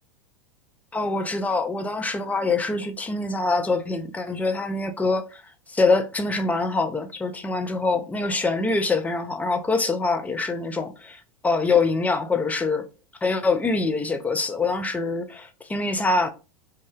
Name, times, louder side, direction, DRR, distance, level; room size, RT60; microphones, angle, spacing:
voice 1, 0.9-5.4 5.7-12.8 13.2-16.3, left 3 dB, 10° left, 0.3 m, -24 dB
2.6 x 2.3 x 3.3 m
hypercardioid pair, 100°, 19 cm